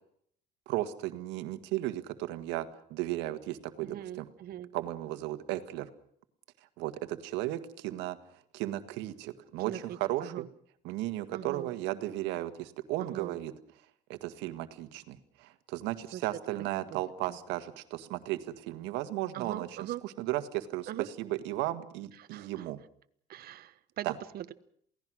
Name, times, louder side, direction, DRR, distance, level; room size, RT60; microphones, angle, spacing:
voice 1, 0.7-4.3 4.7-5.9 6.8-8.2 8.5-9.7 10.0-10.5 10.8-13.5 14.1-19.7 20.0-20.9 21.2-22.8 24.0-24.1, right 15 dB, 85° right, 10 dB, 1.8 m, -35 dB
voice 2, 3.8-4.7 9.6-10.5 11.3-11.7 13.0-13.4 16.1-16.2 16.9-17.0 17.3-17.4 19.3-20.0 20.9-21.1 22.1-22.7 23.3-24.5, right 12 dB, 60° right, 12 dB, 1.4 m, -41 dB
28.0 x 17.5 x 6.3 m, 0.65 s
cardioid pair, 115°, 18 cm